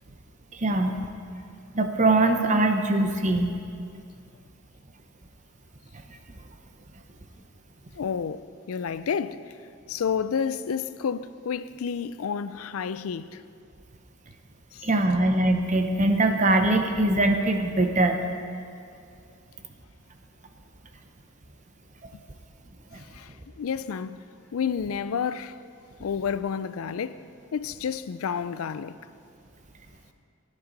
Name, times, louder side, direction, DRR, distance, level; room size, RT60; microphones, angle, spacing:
voice 1, 0.5-1.0 1.7-3.5 14.8-18.2, right 2 dB, 35° right, 0.9 m, -22 dB
voice 2, 8.0-8.4 8.7-9.5 9.9-13.4 14.7-14.8 23.0-24.2 24.5-25.6 26.0-27.2 27.5-29.0, left 6 dB, 80° left, 0.4 m, -30 dB
16.5 x 10.5 x 4.1 m
head